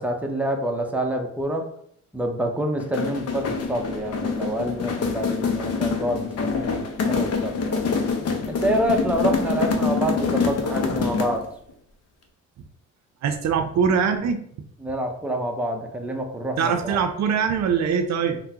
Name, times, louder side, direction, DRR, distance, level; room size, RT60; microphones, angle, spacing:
voice 1, 0.0-1.6 2.1-7.8 8.4-11.4 14.8-17.0, right 1 dB, 5° right, 2 dB, 0.5 m, -27 dB
sound 1, 2.8-11.5, left 5 dB, 55° left, 0.6 m, -25 dB
voice 2, 13.2-14.4 16.6-18.4, right 6 dB, 65° right, 7 dB, 0.5 m, -22 dB
3.6 x 2.1 x 2.8 m, 0.66 s
cardioid pair, 90°, 30 cm